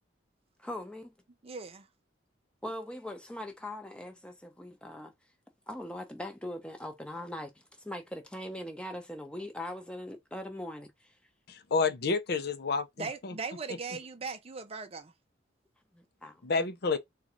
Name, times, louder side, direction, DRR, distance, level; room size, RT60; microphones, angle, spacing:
voice 1, 0.6-1.1 2.6-5.1 5.7-11.2 15.9-16.4, left 1 dB, 5° left, 0.8 m, -41 dB
voice 2, 1.4-1.9 13.0-15.1, right 4 dB, 30° right, 0.5 m, -39 dB
voice 3, 11.5-13.4 16.4-17.0, left 4 dB, 55° left, 0.6 m, -30 dB
3.9 x 2.4 x 3.0 m
head